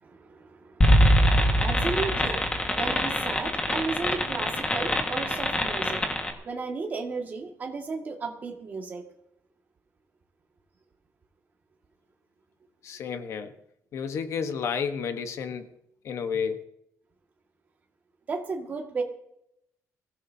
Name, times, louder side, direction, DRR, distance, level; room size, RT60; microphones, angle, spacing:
voice 1, 0.0-9.1 18.3-19.0, right 4 dB, 30° right, 2 dB, 2.0 m, -34 dB
sound 1, 0.8-6.3, equal, 15° left, 1.7 m, -23 dB
voice 2, 12.8-13.5 13.9-15.7 16.0-16.6, left 6 dB, 55° left, 8 dB, 1.2 m, -31 dB
22.5 x 16.0 x 2.8 m, 0.80 s
cardioid pair, 175°, 6 cm